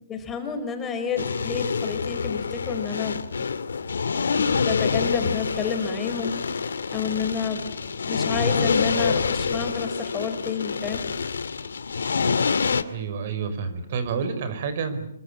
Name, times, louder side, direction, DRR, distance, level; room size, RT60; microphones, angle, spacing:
voice 1, 0.1-3.5 4.3-11.3, left 6 dB, 15° left, 5 dB, 4.9 m, -30 dB
sound 1, 1.2-12.8, left 5 dB, 75° left, 2.1 m, -26 dB
voice 2, 12.9-15.1, right 5 dB, 50° right, 11 dB, 5.3 m, -29 dB
27.5 x 23.5 x 8.7 m, 0.75 s
hypercardioid pair, 140°, 0 cm